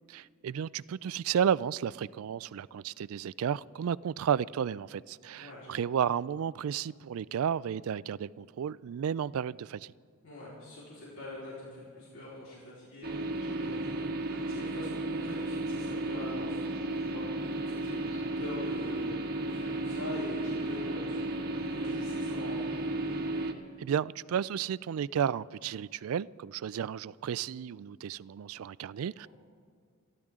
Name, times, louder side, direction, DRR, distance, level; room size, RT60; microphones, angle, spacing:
voice 1, 0.1-9.9 23.8-29.3, right 8 dB, 70° right, 0.3 m, -32 dB
voice 2, 5.4-5.9 10.2-22.8, left 1 dB, 60° left, 4.2 m, -45 dB
sound 1, 13.0-23.5, right 2 dB, 45° right, 1.4 m, -34 dB
28.5 x 12.0 x 3.7 m
head